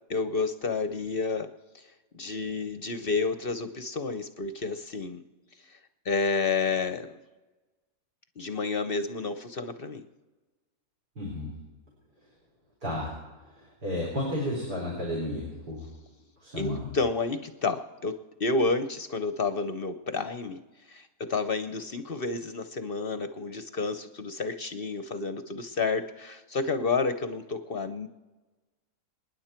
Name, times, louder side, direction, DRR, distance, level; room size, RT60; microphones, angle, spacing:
voice 1, 0.1-1.5 1.7-5.2 5.6-5.8 6.0-7.2 8.4-10.1 16.6-28.1, left 4 dB, 50° left, 10 dB, 0.7 m, -30 dB
voice 2, 11.2-11.5 12.8-13.1 13.5-15.9 16.4-16.9, left 1 dB, 75° right, -2 dB, 4.8 m, -32 dB
28.0 x 10.0 x 4.4 m, 1.2 s
omnidirectional pair, 1.8 m